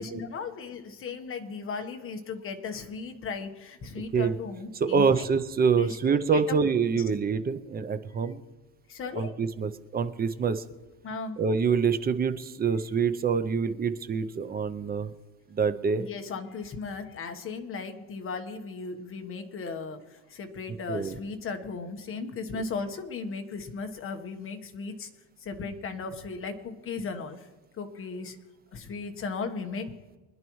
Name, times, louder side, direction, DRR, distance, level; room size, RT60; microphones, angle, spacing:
voice 1, 0.0-3.5 3.8-5.3 5.8-6.2 6.9-7.0 9.0-9.3 11.0-11.3 16.0-20.0 20.4-24.9 25.5-27.4 27.8-28.3 28.7-29.9, left 4 dB, 35° left, 5 dB, 1.3 m, -36 dB
voice 2, 4.7-8.4 9.2-10.6 11.4-15.1 15.5-16.1 20.9-21.2, right 5 dB, 25° right, 11 dB, 0.6 m, -26 dB
24.5 x 10.5 x 3.1 m, 1.1 s
cardioid pair, 160°, 37 cm